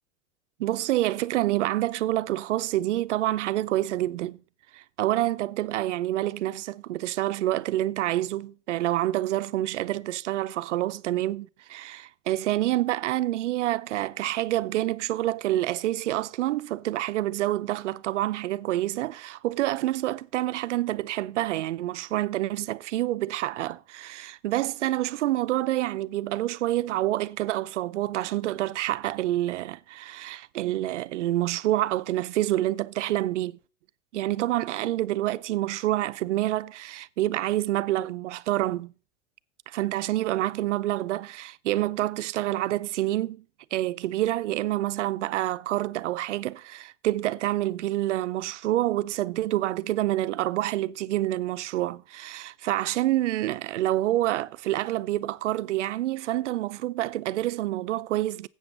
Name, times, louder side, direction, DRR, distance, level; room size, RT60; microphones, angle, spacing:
voice 1, 0.6-4.4 4.7-33.6 34.1-38.9 39.7-43.4 43.7-58.5, right 15 dB, 80° right, 0.6 m, -27 dB
8.0 x 7.9 x 6.5 m
hypercardioid pair, 95°, 35 cm